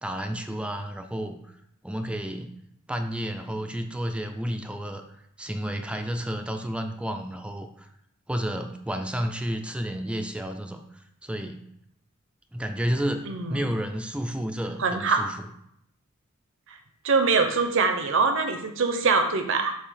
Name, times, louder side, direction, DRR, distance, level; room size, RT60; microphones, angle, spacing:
voice 1, 0.0-1.4 1.8-2.5 2.9-5.0 5.4-7.9 8.3-10.8 11.2-11.6 12.5-15.4, equal, 5° right, 6 dB, 0.4 m, -31 dB
voice 2, 13.3-13.7 14.8-15.3 16.7-16.8 17.0-19.8, right 4 dB, 65° right, 6 dB, 0.8 m, -23 dB
8.4 x 2.9 x 5.8 m, 0.75 s
head